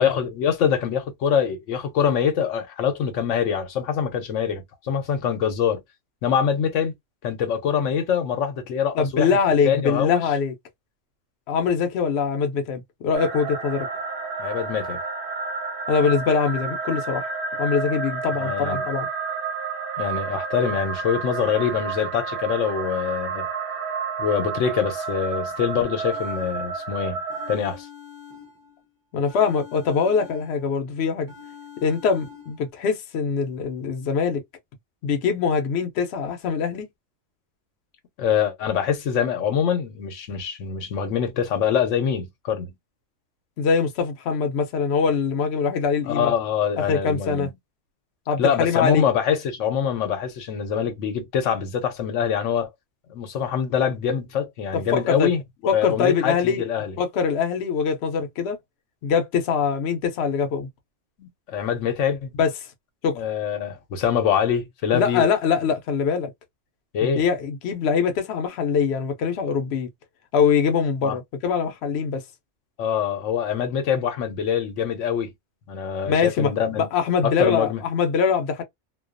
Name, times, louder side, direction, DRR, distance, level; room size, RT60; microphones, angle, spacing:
voice 1, 0.0-5.8 6.2-6.9 7.2-9.4 9.7-10.2 14.4-15.0 18.3-18.8 20.0-23.5 24.2-27.2 27.5-27.9 38.2-42.7 46.1-47.5 48.4-52.7 53.1-57.0 61.2-62.3 63.1-65.2 66.9-67.2 71.0-71.2 72.8-75.3 75.7-76.9 77.2-77.8, left 8 dB, 90° left, 1.0 m, -24 dB
voice 2, 9.0-10.5 11.5-13.9 15.9-17.2 17.6-19.1 29.1-31.3 31.8-34.4 35.0-36.9 43.6-46.3 46.9-47.5 48.3-49.0 54.9-55.3 55.7-56.6 57.0-58.6 59.0-60.7 62.4-62.5 63.0-63.2 64.9-66.3 67.0-69.9 70.3-72.2 76.1-76.5 76.8-78.6, left 6 dB, 65° left, 0.8 m, -23 dB
sound 1, 13.1-27.6, right 4 dB, 55° right, 0.7 m, -30 dB
sound 2, 26.1-26.9 27.3-28.9 29.3-30.9 31.3-32.7, left 7 dB, 30° right, 0.4 m, -45 dB
2.3 x 2.2 x 2.4 m
omnidirectional pair, 1.2 m